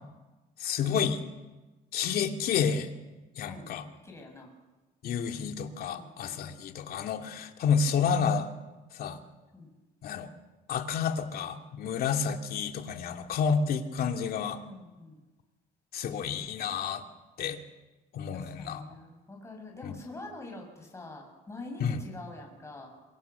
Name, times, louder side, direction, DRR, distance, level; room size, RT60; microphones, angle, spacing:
voice 1, 0.6-1.2 1.9-2.9 3.4-3.8 5.0-8.5 8.9-9.2 10.0-10.3 10.7-14.6 15.9-17.0 17.4-17.6 18.1-18.8 19.8-19.9 21.8-22.0, left 6 dB, 65° left, 5 dB, 2.5 m, -30 dB
voice 2, 4.0-4.5 5.9-6.6 7.4-7.5 9.5-9.8 14.7-15.2 18.3-22.9, left 2 dB, 15° left, 1 dB, 6.6 m, -45 dB
26.0 x 24.0 x 7.0 m, 1.2 s
cardioid pair, 110°, 17 cm